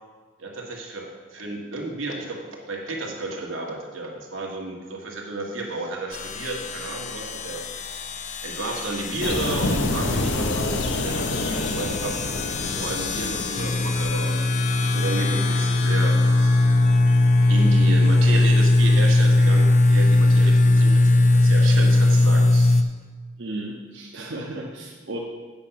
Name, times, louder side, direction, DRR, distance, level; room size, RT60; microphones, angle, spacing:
voice 1, 0.4-7.6 8.4-12.2 12.7-16.8 17.5-22.8, right 2 dB, 90° right, -1 dB, 1.7 m, -32 dB
sound 1, 6.1-22.8, left 2 dB, 35° left, 0.4 m, -20 dB
sound 2, 9.2-14.1, left 2 dB, 70° left, 0.8 m, -27 dB
voice 2, 23.4-25.2, right 1 dB, 65° right, -2 dB, 0.9 m, -34 dB
8.8 x 5.8 x 5.8 m, 1.4 s
head